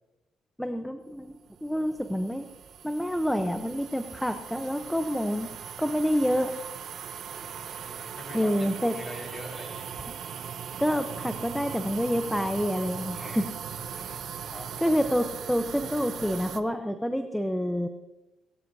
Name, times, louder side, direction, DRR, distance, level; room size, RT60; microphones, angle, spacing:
voice 1, 0.6-2.5 2.8-5.5 5.8-6.5 8.3-8.9 10.3-10.5 10.8-13.5 14.0-14.5 14.8-17.9, equal, ahead, 7 dB, 0.8 m, -28 dB
sound 1, 1.4-16.6, right 8 dB, 65° right, 0.8 m, -39 dB
voice 2, 7.3-9.9 13.7-14.8, left 1 dB, 20° left, 1 dB, 5.0 m, -44 dB
21.5 x 14.0 x 2.8 m, 1.0 s
cardioid pair, 90°, 0 cm